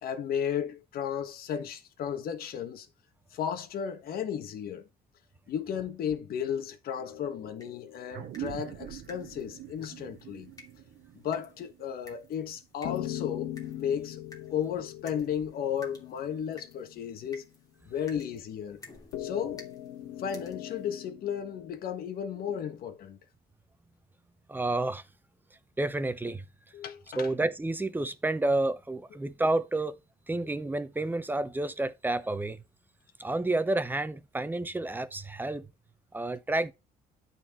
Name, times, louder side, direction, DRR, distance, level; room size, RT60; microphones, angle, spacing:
voice 1, 0.0-2.9 3.3-4.9 5.5-10.5 11.1-14.2 14.5-17.4 17.9-18.8 19.2-19.7 20.2-23.2 26.7-27.3, left 8 dB, 65° left, 1.4 m, -34 dB
sound 1, 7.0-9.6 12.8-17.5 19.1-21.7, left 13 dB, 85° left, 1.6 m, -42 dB
sound 2, 7.6-20.9, left 2 dB, 20° left, 2.8 m, -55 dB
sound 3, 8.1-13.0, right 14 dB, 65° right, 0.7 m, -44 dB
voice 2, 24.5-25.0 25.8-26.4 27.2-30.0 30.3-32.6 33.2-35.7 36.1-36.7, right 2 dB, 10° right, 0.8 m, -30 dB
12.0 x 4.3 x 3.0 m
cardioid pair, 110°, 17 cm